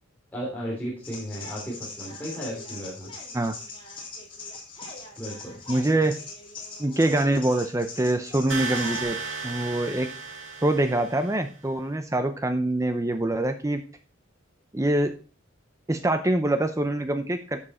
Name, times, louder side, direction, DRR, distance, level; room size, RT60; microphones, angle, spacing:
voice 1, 0.3-3.1 5.2-5.6, equal, 10° left, -5 dB, 3.1 m, -34 dB
sound 1, 1.0-9.0, left 3 dB, 25° left, 3.5 m, -41 dB
voice 2, 5.7-6.1 6.8-9.2 9.4-10.1 10.6-13.8 14.7-15.1 15.9-17.6, right 1 dB, 15° right, 8 dB, 0.6 m, -24 dB
sound 2, 8.5-11.4, right 5 dB, 75° right, 4.6 m, -34 dB
11.0 x 7.4 x 4.3 m, 0.36 s
head